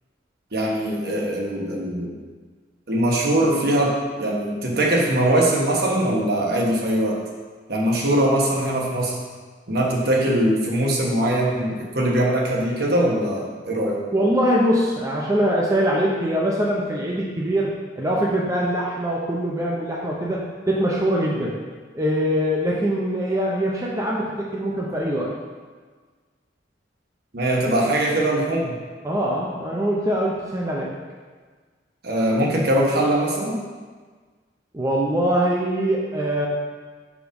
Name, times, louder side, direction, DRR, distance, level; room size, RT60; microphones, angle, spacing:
voice 1, 0.5-2.1 2.9-7.2 7.7-9.1 9.7-14.0 27.3-28.8 32.0-33.6, right 1 dB, 60° right, -3 dB, 1.3 m, -21 dB
voice 2, 14.1-21.6 21.9-25.3 29.0-30.9 34.7-36.5, equal, 20° right, -4 dB, 0.7 m, -23 dB
5.1 x 5.0 x 5.2 m, 1.5 s
head